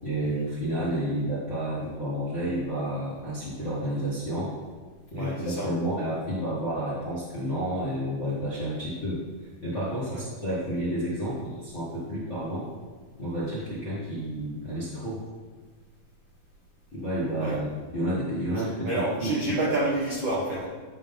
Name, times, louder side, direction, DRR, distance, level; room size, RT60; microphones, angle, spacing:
voice 1, 0.0-4.5 5.1-9.2 9.6-12.7 13.2-15.2 16.9-19.6, equal, 35° left, -9 dB, 1.1 m, -30 dB
voice 2, 5.1-5.7 10.1-10.2 17.4-17.6 18.8-20.7, right 2 dB, 75° right, -6 dB, 1.1 m, -28 dB
11.0 x 3.8 x 5.4 m, 1.4 s
omnidirectional pair, 4.2 m